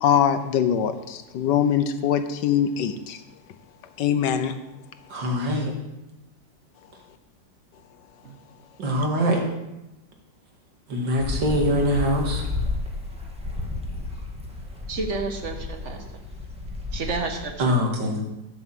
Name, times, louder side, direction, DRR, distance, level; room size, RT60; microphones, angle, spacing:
voice 1, 0.0-3.2 4.0-4.6, left 8 dB, 75° left, 10 dB, 1.3 m, -22 dB
voice 2, 5.1-5.7 8.8-9.4 10.9-12.4 17.6-18.2, equal, 75° right, 1 dB, 2.7 m, -23 dB
sound 1, 11.2-17.5, left 3 dB, 5° right, 1.5 m, -32 dB
voice 3, 14.9-16.2 16.9-17.7, right 3 dB, 45° right, 4 dB, 1.5 m, -31 dB
11.5 x 6.0 x 7.4 m, 0.95 s
omnidirectional pair, 2.0 m